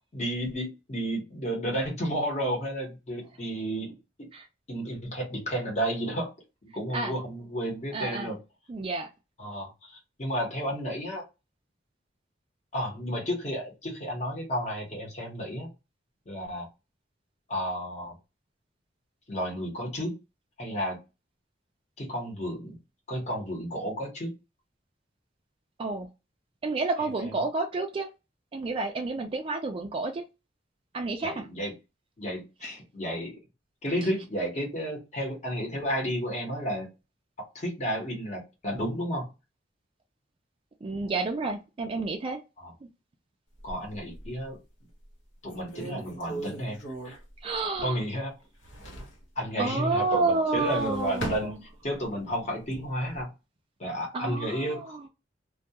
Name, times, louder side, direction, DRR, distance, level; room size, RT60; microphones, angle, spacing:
voice 1, 0.1-4.0 4.7-6.3 6.6-8.4 9.4-11.2 12.7-15.7 16.3-16.7 17.5-18.2 19.3-20.2 20.6-21.0 22.0-22.8 23.1-24.3 27.0-27.4 31.2-31.7 32.2-33.4 33.8-36.9 37.5-39.3 42.6-42.7 43.6-44.6 45.4-46.8 47.0-47.2 47.8-48.3 49.4-51.5 51.8-53.3 53.8-55.0, equal, 40° left, -1 dB, 0.9 m, -32 dB
voice 2, 7.9-8.4 8.7-9.1 25.8-26.1 26.6-28.1 28.5-30.2 30.9-31.5 40.8-42.4 47.4-48.0 49.6-51.6 54.1-55.1, right 3 dB, 30° right, 3 dB, 0.3 m, -30 dB
sound 1, 43.5-44.5 45.0-45.1 45.5-48.1 48.4-49.2 50.4-52.1 52.6-53.2, right 1 dB, 85° left, 0.9 m, -40 dB
2.3 x 2.2 x 2.7 m, 0.26 s
head